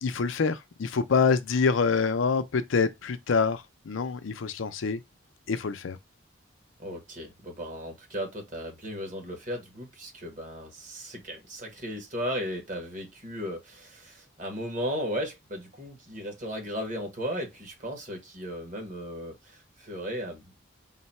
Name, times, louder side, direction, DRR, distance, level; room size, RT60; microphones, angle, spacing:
voice 1, 0.0-5.0 5.5-6.0, left 5 dB, 80° left, 0.5 m, -26 dB
voice 2, 6.8-20.5, equal, 40° right, 1.3 m, -36 dB
3.9 x 2.2 x 4.1 m
head